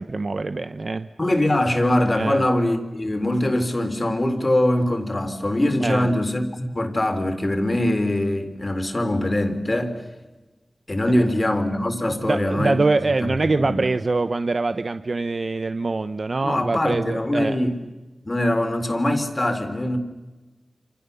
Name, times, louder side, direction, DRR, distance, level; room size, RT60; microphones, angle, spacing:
voice 1, 0.0-1.1 2.1-2.4 5.8-6.1 11.1-11.3 12.1-17.6, right 3 dB, 60° right, 0.9 m, -24 dB
voice 2, 1.2-10.0 10.9-12.8 13.2-13.3 13.6-13.8 16.4-17.8 18.3-20.0, left 1 dB, 35° left, 4.0 m, -22 dB
28.5 x 28.0 x 7.0 m
wide cardioid pair, 60°, 0 cm